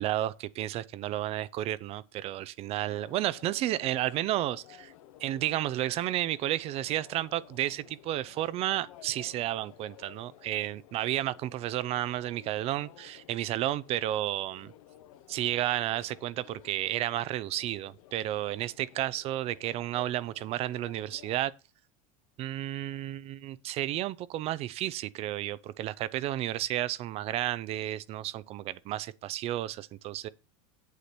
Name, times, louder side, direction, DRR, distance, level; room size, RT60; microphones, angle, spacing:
voice 1, 0.0-4.9 5.2-14.7 15.3-21.5 22.4-30.3, right 13 dB, 35° right, 0.5 m, -32 dB
sound 1, 2.9-21.4, left 12 dB, 85° left, 1.2 m, -55 dB
8.2 x 8.2 x 4.4 m
supercardioid pair, 145°, 17 cm